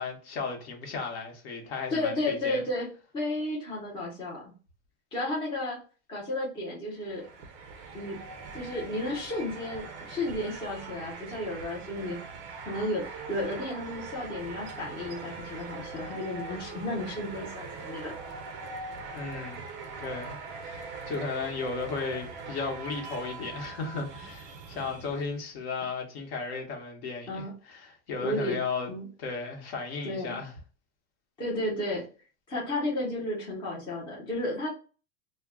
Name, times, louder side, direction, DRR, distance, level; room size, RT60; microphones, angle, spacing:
voice 1, 0.0-2.6 19.1-19.7 20.0-20.4 20.6-28.9 29.2-30.5, left 4 dB, 55° left, 1.0 m, -35 dB
voice 2, 1.9-2.9 3.1-4.5 5.1-5.8 6.1-7.3 7.9-8.2 8.5-12.2 12.6-18.1 27.3-27.5 28.2-28.6 28.9-29.1 30.0-30.4 31.4-32.1 32.5-34.7, left 1 dB, 15° left, 0.6 m, -33 dB
sound 1, 6.9-25.4, right 4 dB, 40° right, 0.4 m, -42 dB
2.2 x 2.1 x 3.5 m
supercardioid pair, 170°, 36 cm